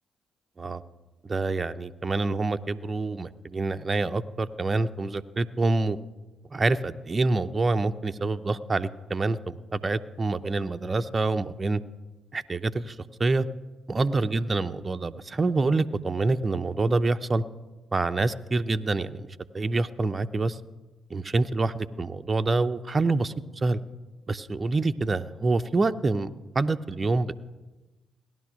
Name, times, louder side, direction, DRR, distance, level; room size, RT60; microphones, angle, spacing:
voice 1, 1.2-6.0 6.5-11.8 12.3-13.5 13.9-17.4 17.9-19.3 19.5-20.6 21.1-23.8 24.3-27.4, right 3 dB, 35° right, 9 dB, 0.7 m, -26 dB
17.5 x 11.0 x 6.3 m, 1.1 s
hypercardioid pair, 45°, 0 cm